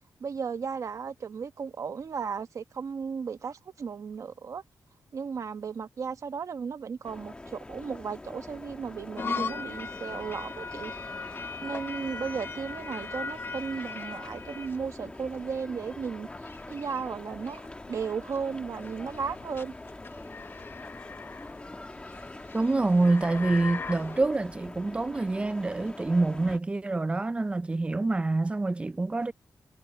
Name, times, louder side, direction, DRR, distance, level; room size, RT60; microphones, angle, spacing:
voice 1, 0.2-4.6 5.1-11.0 11.6-19.7, right 6 dB, 50° right, 1.3 m, -35 dB
sound 1, 7.0-26.6, left 2 dB, 15° left, 1.4 m, -44 dB
sound 2, 9.2-24.2, left 4 dB, 35° left, 0.8 m, -40 dB
voice 2, 22.5-29.3, right 2 dB, 15° right, 0.4 m, -26 dB
wide cardioid pair, 165°, 7 cm